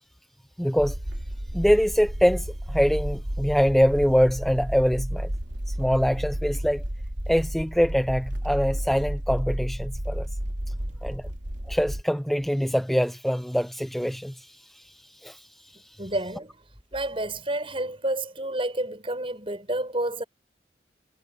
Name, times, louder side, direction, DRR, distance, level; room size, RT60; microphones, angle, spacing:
voice 1, 0.6-1.0 1.5-5.3 5.7-6.8 7.3-10.3 11.0-11.3 11.7-16.0, equal, ahead, 0.8 m, -24 dB
sound 1, 0.8-12.0, equal, 80° right, 2.9 m, -32 dB
voice 2, 16.0-16.6 16.9-20.2, right 1 dB, 30° right, 6.6 m, -29 dB
head